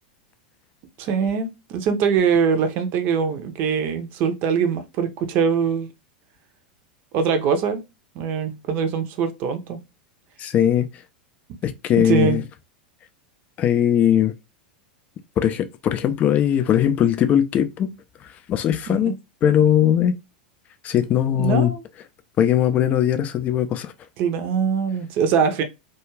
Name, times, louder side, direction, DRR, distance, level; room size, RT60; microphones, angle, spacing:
voice 1, 1.0-5.9 7.1-7.8 8.1-9.8 12.0-12.4 18.9-19.1 21.4-21.8 24.2-25.6, right 6 dB, 45° right, 0.6 m, -22 dB
voice 2, 10.4-10.9 11.6-12.4 13.6-14.3 15.4-17.9 18.2-20.1 20.8-21.7 22.4-23.9, left 10 dB, 30° left, 0.4 m, -20 dB
2.4 x 2.3 x 3.0 m
figure-of-eight pair, 90°, 5 cm